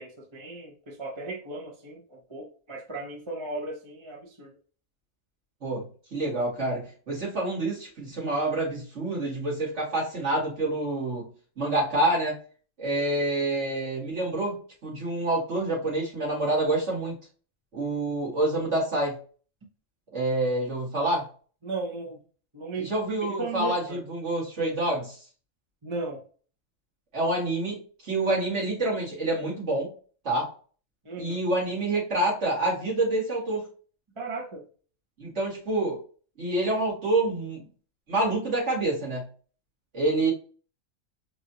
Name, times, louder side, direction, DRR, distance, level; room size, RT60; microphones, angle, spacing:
voice 1, 0.0-4.5 21.6-22.2 22.5-22.9 23.4-24.0 25.8-26.2 31.0-31.4 34.2-34.6, right 3 dB, 25° right, -2 dB, 0.8 m, -36 dB
voice 2, 5.6-11.3 11.6-12.4 12.8-17.1 17.7-19.2 20.1-21.2 22.8-25.2 27.1-29.9 30.2-30.5 31.2-33.7 35.2-36.0 36.4-37.6 38.1-39.3 39.9-40.3, right 2 dB, 55° right, -5 dB, 2.5 m, -27 dB
4.8 x 2.7 x 2.8 m, 0.40 s
omnidirectional pair, 1.4 m